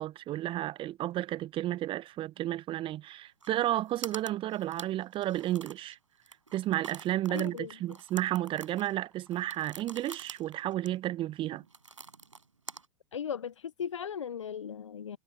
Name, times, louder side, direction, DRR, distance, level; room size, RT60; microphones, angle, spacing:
voice 1, 0.0-6.0 6.5-11.6, right 14 dB, 35° right, 1.2 m, -32 dB
sound 1, 3.4-3.5 3.8-6.0 6.2-12.9, right 4 dB, 80° right, 5.9 m, -47 dB
voice 2, 7.3-7.7 13.1-15.2, left 8 dB, 75° left, 1.0 m, -37 dB
figure-of-eight pair, 85°, 16 cm